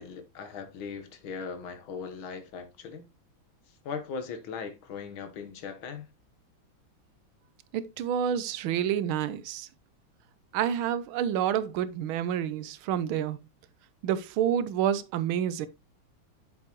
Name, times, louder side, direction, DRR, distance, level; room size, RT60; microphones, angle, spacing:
voice 1, 0.0-3.0 3.7-6.1, left 5 dB, 80° left, 1.9 m, -39 dB
voice 2, 7.7-9.7 10.5-13.4 14.0-15.7, right 9 dB, 85° right, 1.5 m, -28 dB
7.5 x 7.3 x 2.9 m
omnidirectional pair, 2.2 m